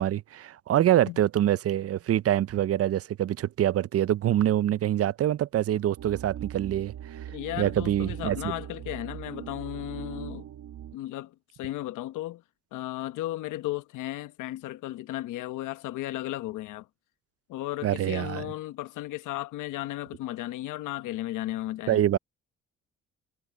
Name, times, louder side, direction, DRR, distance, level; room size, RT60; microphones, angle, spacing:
voice 1, 0.0-6.9 7.6-8.5 17.8-18.5 21.9-22.2, right 12 dB, 50° right, 0.5 m, -25 dB
voice 2, 0.8-1.2 7.3-10.5 10.9-12.4 12.7-16.9 17.5-22.0, left 15 dB, 90° left, 1.1 m, -35 dB
sound 1, 6.0-11.0, right 11 dB, 70° right, 1.3 m, -40 dB
cardioid pair, 90°, 30 cm